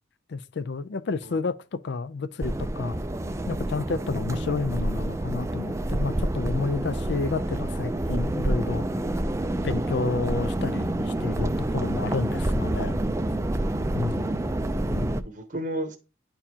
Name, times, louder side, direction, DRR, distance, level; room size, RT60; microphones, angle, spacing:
voice 1, 0.3-3.0 3.5-9.2 9.6-13.0 13.9-14.4 14.9-15.2, left 4 dB, 60° left, 0.4 m, -30 dB
sound 1, 2.4-15.2, right 1 dB, 15° right, 0.4 m, -28 dB
voice 2, 9.7-10.4 15.2-16.0, right 1 dB, 40° right, 0.8 m, -34 dB
10.0 x 4.5 x 2.8 m
head